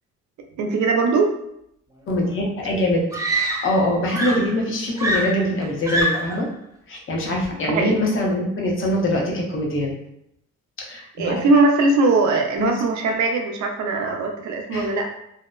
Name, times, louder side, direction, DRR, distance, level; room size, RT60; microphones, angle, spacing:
voice 1, 0.6-1.3 7.7-8.0 11.2-15.1, right 3 dB, 70° right, 3 dB, 0.5 m, -20 dB
voice 2, 2.1-6.5 6.9-9.9 10.8-11.3 12.6-12.7 14.7-14.9, left 1 dB, 45° left, -1 dB, 0.7 m, -23 dB
Screaming, 2.3-2.4 3.1-3.9 4.1-6.4 7.4-7.7, right 1 dB, 10° right, 0.5 m, -25 dB
2.7 x 2.1 x 2.3 m, 0.76 s
cardioid pair, 90°, 30 cm